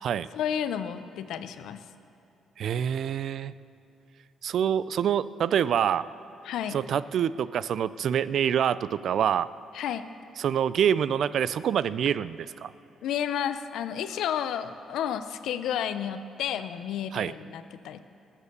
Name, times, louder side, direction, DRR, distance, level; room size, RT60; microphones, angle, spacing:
voice 1, 0.3-1.9 6.5-6.8 9.7-10.1 13.0-18.0, left 9 dB, 80° left, 11 dB, 0.6 m, -31 dB
voice 2, 2.6-3.5 4.4-6.1 6.7-9.5 10.4-12.7 17.1-17.3, right 9 dB, 65° right, 17 dB, 0.4 m, -26 dB
20.0 x 7.4 x 6.6 m, 2.9 s
cardioid pair, 90°, 0 cm